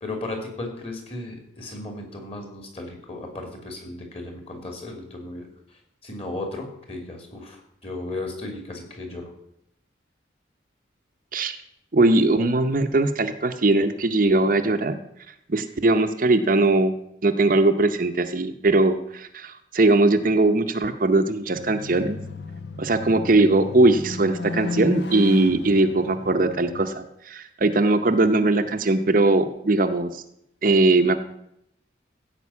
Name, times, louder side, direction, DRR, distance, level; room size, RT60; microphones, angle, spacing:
voice 1, 0.0-9.3, left 2 dB, 30° left, 3 dB, 2.7 m, -35 dB
voice 2, 11.9-15.0 15.5-16.9 17.2-22.2 22.8-30.2 30.6-31.2, right 2 dB, 45° right, 7 dB, 0.7 m, -20 dB
sound 1, 21.5-26.8, left 3 dB, 65° left, 0.9 m, -33 dB
15.5 x 5.3 x 8.3 m, 0.76 s
head